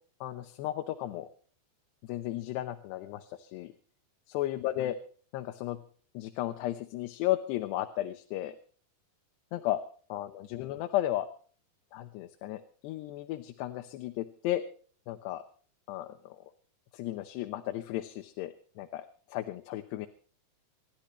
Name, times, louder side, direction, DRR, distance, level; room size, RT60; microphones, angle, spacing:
voice 1, 0.2-1.3 2.0-3.7 4.3-5.0 5.3-5.8 6.1-8.6 9.5-9.8 10.1-11.3 11.9-14.6 15.1-15.4 15.9-16.4 16.9-20.1, left 14 dB, 80° left, 7 dB, 3.0 m, -34 dB
28.0 x 12.0 x 3.2 m, 0.44 s
omnidirectional pair, 4.8 m